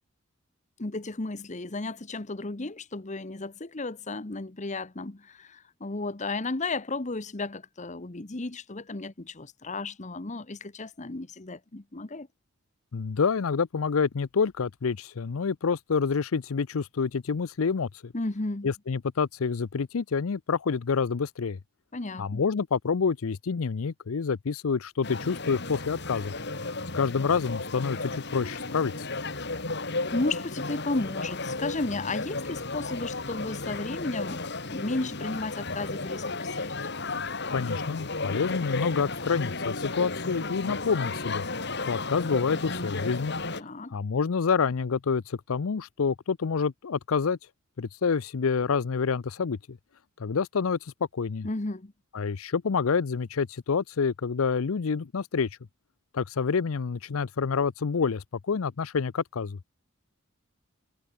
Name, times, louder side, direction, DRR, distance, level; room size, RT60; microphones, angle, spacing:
voice 1, 0.8-12.3 18.1-18.7 21.9-22.4 30.1-36.7 43.6-44.0 51.4-51.9, left 2 dB, 35° left, 1.1 m, -34 dB
voice 2, 12.9-18.1 18.6-21.6 22.2-26.3 26.9-29.1 37.5-41.4 41.8-43.4 43.9-47.4 47.8-49.8 50.2-51.5 52.1-55.5 56.1-59.6, left 5 dB, 85° left, 0.6 m, -28 dB
sound 1, 25.0-43.6, left 3 dB, 55° left, 4.4 m, -34 dB
head